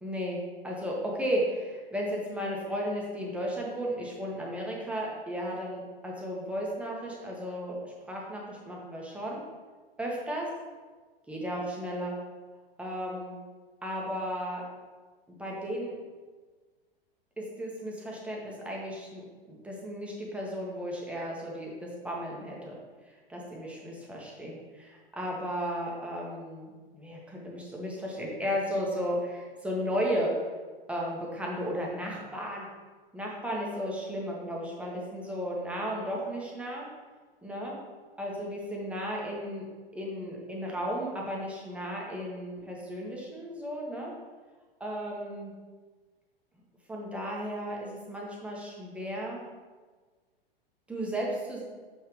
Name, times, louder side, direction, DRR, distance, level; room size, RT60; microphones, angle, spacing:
voice 1, 0.0-9.4 10.0-10.5 11.3-12.1 12.8-13.4 13.8-14.6 15.3-16.0 17.4-19.2 19.5-22.8 23.3-30.4 30.9-32.7 33.1-36.9 37.4-37.7 38.2-39.6 39.9-44.1 44.8-45.5 46.9-49.4 50.9-51.6, equal, 5° right, -3 dB, 1.5 m, -34 dB
7.0 x 5.9 x 3.3 m, 1.4 s
figure-of-eight pair, 100°, 30 cm